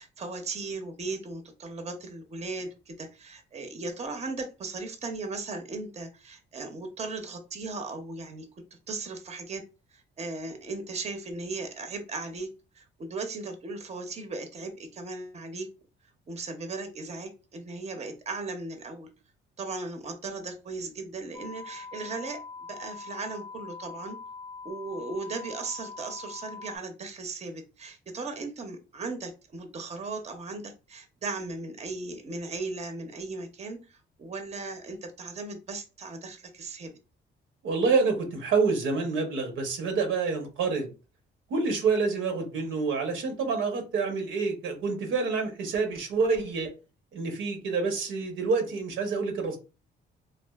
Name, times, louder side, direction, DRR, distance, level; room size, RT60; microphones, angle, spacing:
voice 1, 0.0-8.5 8.9-9.6 9.9-12.5 12.7-15.7 16.3-19.1 19.6-22.4 22.7-24.2 24.6-36.9, right 3 dB, 35° right, 5 dB, 0.6 m, -37 dB
sound 1, 21.3-26.8, left 4 dB, 15° left, 0.6 m, -43 dB
voice 2, 37.6-40.9 41.5-46.7 47.1-49.6, right 4 dB, 85° right, 4 dB, 0.9 m, -27 dB
3.2 x 2.4 x 2.3 m, 0.31 s
cardioid pair, 90°, 20 cm